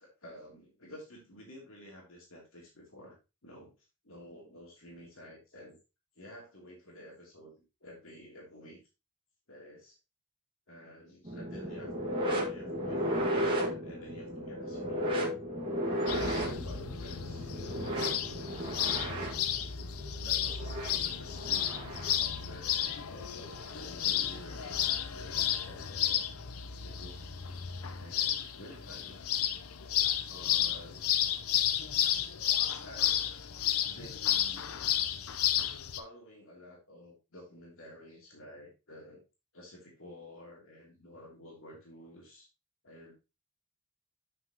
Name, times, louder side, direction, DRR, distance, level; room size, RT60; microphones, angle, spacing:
voice 1, 0.0-3.2 3.4-3.7 4.0-5.8 6.1-7.5 7.8-8.8 9.5-10.0 10.7-11.9 12.2-15.3 16.0-17.5 18.5-19.4 20.2-24.8 25.1-26.2 26.7-27.4 28.0-29.2 30.3-31.0 32.8-33.3 33.8-34.7 35.9-39.2 39.5-42.5 42.8-43.1, left 1 dB, 65° left, -2 dB, 2.8 m, -51 dB
sound 1, 11.2-22.2 23.5-23.7 24.7-24.8, equal, 25° right, 1.8 m, -35 dB
sound 2, 16.1-36.0, left 10 dB, 80° left, 0.7 m, -32 dB
7.6 x 6.1 x 2.9 m, 0.27 s
head